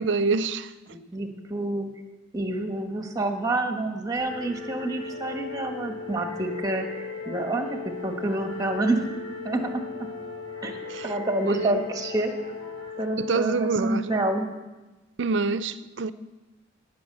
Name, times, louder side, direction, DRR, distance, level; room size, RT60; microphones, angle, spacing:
voice 1, 0.0-0.7 10.9-11.2 11.5-11.8 13.2-14.2 15.2-16.1, right 4 dB, 60° right, 0.6 m, -26 dB
voice 2, 0.9-1.9 2.3-9.1 9.4-9.8 10.6-10.8 11.0-12.3 13.0-14.5, right 2 dB, 20° right, 1.3 m, -28 dB
sound 1, 4.1-12.9, right 1 dB, 20° left, 3.6 m, -45 dB
Wind instrument woodwind instrument, 4.5-13.6, left 6 dB, 70° left, 0.7 m, -38 dB
17.5 x 6.2 x 7.8 m
head